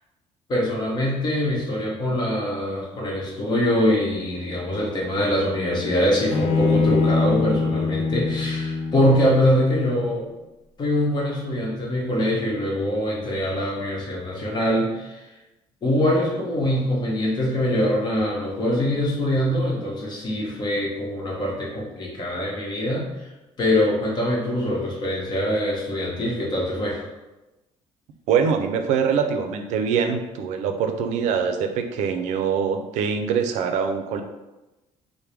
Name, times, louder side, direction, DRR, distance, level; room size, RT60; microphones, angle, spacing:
voice 1, 0.5-10.2 10.8-15.3 15.8-23.3 23.6-27.0, left 1 dB, 40° left, -3 dB, 1.1 m, -23 dB
Bowed string instrument, 6.3-9.6, left 4 dB, 70° left, 0.5 m, -23 dB
voice 2, 28.3-34.2, right 6 dB, 85° right, 6 dB, 0.4 m, -23 dB
4.5 x 2.1 x 3.3 m, 1.0 s
cardioid pair, 135°, 12 cm